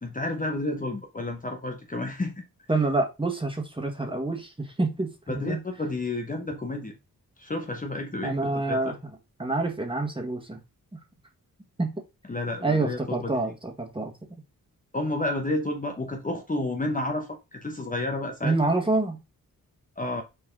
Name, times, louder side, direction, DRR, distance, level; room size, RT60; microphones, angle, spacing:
voice 1, 0.0-2.4 5.3-6.9 7.4-8.9 12.3-13.4 14.9-18.7 20.0-20.2, left 2 dB, 25° left, 1.0 m, -31 dB
voice 2, 2.7-5.6 8.2-8.9 9.4-10.6 10.9-11.0 11.8-11.9 12.6-14.1 18.4-19.2, right 2 dB, 15° right, 1.7 m, -27 dB
6.4 x 4.1 x 3.8 m
cardioid pair, 85°, 35 cm